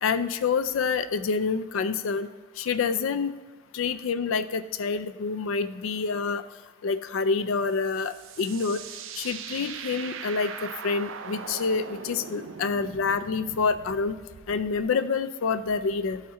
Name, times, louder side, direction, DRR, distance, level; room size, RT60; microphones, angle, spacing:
voice 1, 0.0-2.3 2.6-3.3 3.7-6.4 6.8-8.8 9.2-14.2 14.5-16.2, left 5 dB, 75° left, 11 dB, 0.4 m, -27 dB
sound 1, 7.7-14.8, right 6 dB, 70° right, 0.4 m, -41 dB
11.5 x 4.3 x 3.7 m, 1.3 s
head